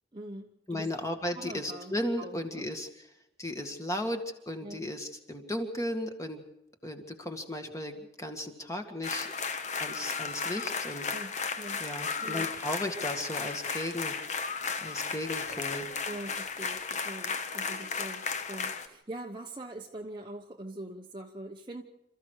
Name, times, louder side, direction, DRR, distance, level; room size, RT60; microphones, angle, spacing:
voice 1, 0.1-0.9 1.3-2.7 4.6-4.9 11.1-11.9 12.2-12.5 16.0-21.8, right 1 dB, 25° right, 1 dB, 1.0 m, -43 dB
voice 2, 0.7-2.9 3.4-4.2 4.5-6.4 6.8-9.3 9.8-11.1 11.8-14.2 14.8-15.9, left 1 dB, 15° left, 5 dB, 2.0 m, -35 dB
sound 1, 9.0-18.9, left 5 dB, 35° left, 1.2 m, -34 dB
28.0 x 14.0 x 6.6 m, 0.88 s
head